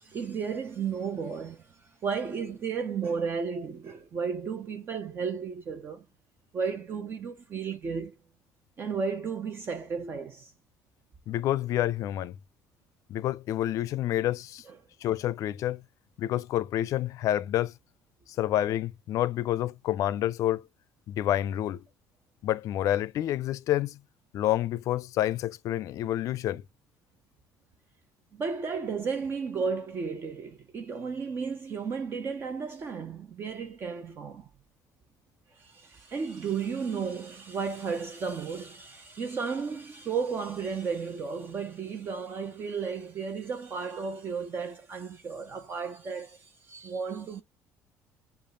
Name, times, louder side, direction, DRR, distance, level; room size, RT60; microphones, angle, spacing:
voice 1, 0.0-1.7 2.0-6.0 6.5-8.1 8.8-10.5 14.7-14.8 28.3-34.5 35.5-47.4, right 5 dB, 35° right, 0.6 m, -33 dB
voice 2, 11.3-12.4 13.1-14.6 15.0-15.8 16.2-17.7 18.4-20.7 21.1-21.8 22.4-24.0 24.3-26.6, left 13 dB, 60° left, 0.4 m, -28 dB
5.1 x 2.5 x 3.0 m
cardioid pair, 130°, 7 cm